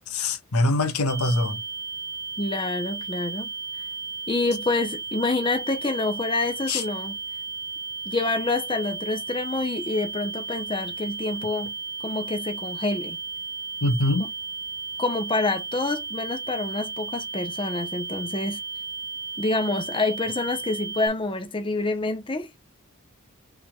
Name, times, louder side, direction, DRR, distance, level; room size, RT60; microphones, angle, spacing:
voice 1, 0.1-1.6 6.7-6.8 13.8-14.3, left 2 dB, 90° left, 1.2 m, -23 dB
sound 1, 1.1-21.1, right 4 dB, 10° right, 0.5 m, -34 dB
voice 2, 2.4-3.5 4.3-7.2 8.1-11.7 12.0-13.2 14.2-14.3 15.0-18.6 19.4-22.5, left 2 dB, 25° left, 0.8 m, -27 dB
5.8 x 3.4 x 2.3 m
head